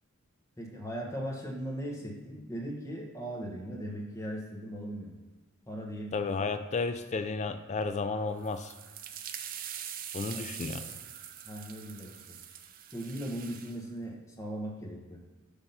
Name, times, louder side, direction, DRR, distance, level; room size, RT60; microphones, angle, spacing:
voice 1, 0.6-5.1 5.7-6.4 10.3-10.9 11.4-12.1 12.9-15.2, right 1 dB, 15° left, -2 dB, 1.1 m, -39 dB
voice 2, 6.1-8.7 10.1-10.9, left 4 dB, 30° left, 9 dB, 0.3 m, -32 dB
sound 1, 8.4-13.8, right 9 dB, 40° right, 0.4 m, -43 dB
5.9 x 3.6 x 5.4 m, 1.3 s
head